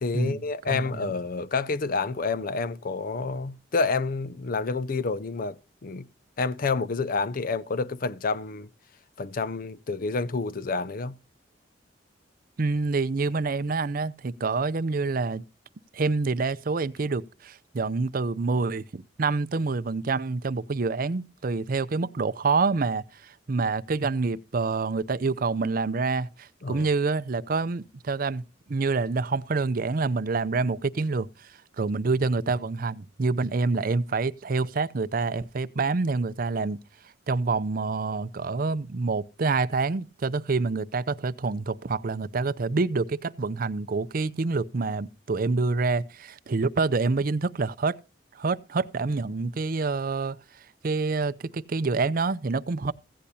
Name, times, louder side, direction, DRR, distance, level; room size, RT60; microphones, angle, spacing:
voice 1, 0.0-6.1 6.4-8.7 9.2-11.2 26.6-26.9, left 4 dB, 50° left, 0.5 m, -29 dB
voice 2, 0.7-1.1 12.6-15.4 15.9-28.4 28.7-31.5 31.8-36.8 37.3-48.0 48.3-52.9, right 4 dB, 50° right, 0.5 m, -27 dB
16.0 x 10.0 x 2.8 m
head